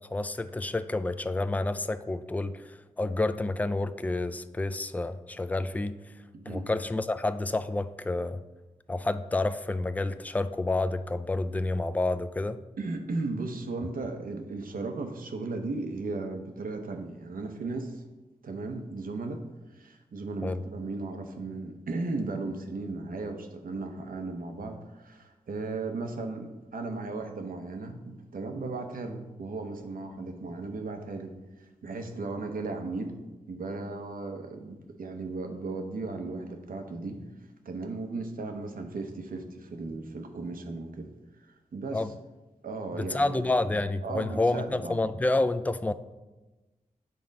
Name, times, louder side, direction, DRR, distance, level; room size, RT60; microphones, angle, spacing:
voice 1, 0.1-6.0 6.5-8.4 8.9-12.6 20.4-20.6 41.9-42.1 43.0-45.9, left 2 dB, 10° left, 12 dB, 0.3 m, -29 dB
voice 2, 6.3-6.7 12.8-18.0 18.4-19.4 19.7-33.2 33.5-37.2 37.6-41.1 41.4-42.1 42.6-43.4 44.0-45.0, right 3 dB, 85° right, 5 dB, 0.8 m, -36 dB
7.8 x 3.8 x 5.2 m, 1.1 s
wide cardioid pair, 65°, 14 cm